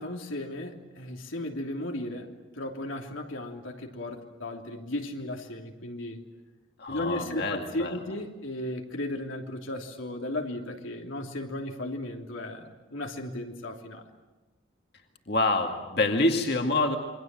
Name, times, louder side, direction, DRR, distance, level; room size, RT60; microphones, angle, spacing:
voice 1, 0.0-6.2 6.9-14.1, left 1 dB, 90° left, 2 dB, 3.1 m, -35 dB
voice 2, 6.8-7.9 15.3-17.0, left 2 dB, 55° left, 3 dB, 2.2 m, -26 dB
28.0 x 23.5 x 7.6 m, 1.2 s
head